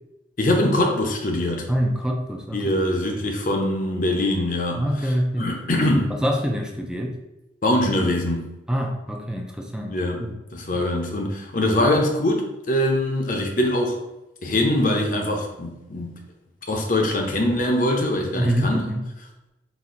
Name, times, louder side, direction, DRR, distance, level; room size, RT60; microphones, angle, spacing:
voice 1, 0.4-1.7 2.5-6.1 7.6-8.5 9.9-14.0 14.4-16.2 16.7-18.8, left 1 dB, 45° left, 2 dB, 0.7 m, -23 dB
voice 2, 1.7-2.7 4.8-5.5 5.8-5.9 6.1-7.1 8.7-9.9 10.2-10.3 10.7-10.9 18.3-19.0, equal, 5° right, 1 dB, 0.5 m, -25 dB
4.2 x 2.7 x 3.8 m, 0.96 s
head